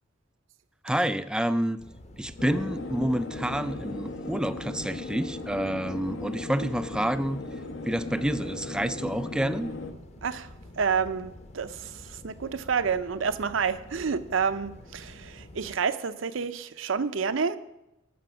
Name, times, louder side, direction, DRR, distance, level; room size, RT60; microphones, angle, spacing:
voice 1, 0.8-1.8 2.2-7.4 7.9-9.7, right 1 dB, 5° right, 13 dB, 0.3 m, -28 dB
sound 1, 1.8-15.8, left 1 dB, 35° left, 0.9 m, -48 dB
sound 2, 2.4-9.9, left 2 dB, 70° left, 0.9 m, -37 dB
voice 2, 10.8-17.6, right 6 dB, 80° right, 12 dB, 0.6 m, -29 dB
12.0 x 6.7 x 6.1 m, 0.90 s
head